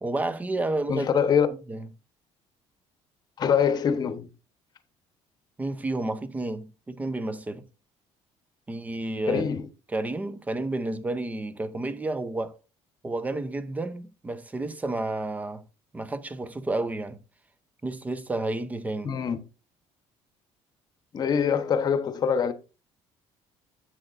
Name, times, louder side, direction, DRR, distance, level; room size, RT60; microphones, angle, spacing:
voice 1, 0.0-1.1 1.7-1.9 5.6-7.7 8.7-9.5 9.9-12.5 13.0-15.6 15.9-17.2 17.8-19.2, right 2 dB, 15° right, 0.6 m, -31 dB
voice 2, 0.9-1.5 3.4-4.3 9.3-9.6 19.0-19.4 21.1-22.5, left 7 dB, 35° left, 1.0 m, -24 dB
10.0 x 7.8 x 2.5 m
cardioid pair, 160°, 12 cm